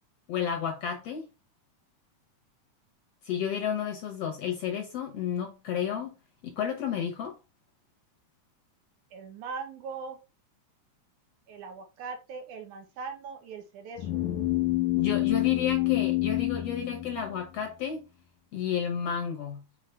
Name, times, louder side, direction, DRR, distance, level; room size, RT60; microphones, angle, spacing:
voice 1, 0.3-1.2 3.2-6.1 6.4-7.4 15.0-18.0 18.5-19.6, left 8 dB, 65° left, 1.8 m, -31 dB
voice 2, 9.1-10.2 11.5-14.2, right 5 dB, 70° right, 2.5 m, -40 dB
sound 1, 14.0-17.7, left 17 dB, 80° left, 2.0 m, -28 dB
6.3 x 4.2 x 3.5 m
omnidirectional pair, 3.7 m